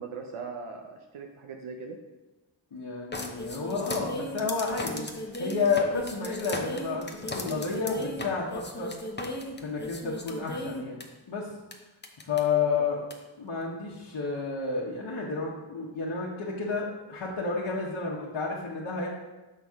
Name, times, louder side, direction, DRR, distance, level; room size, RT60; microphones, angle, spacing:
voice 1, 0.0-2.0 12.6-12.7, right 5 dB, 80° right, 2 dB, 0.7 m, -40 dB
voice 2, 2.7-8.9 9.6-11.0 11.3-11.5 12.2-13.0 13.4-19.1, left 4 dB, 60° left, -5 dB, 1.1 m, -31 dB
sound 1, 3.1-11.0 11.7-11.8 12.0-12.4 13.1-13.2, left 1 dB, 20° left, 0.8 m, -36 dB
6.0 x 5.7 x 3.6 m, 1.1 s
cardioid pair, 60°, 49 cm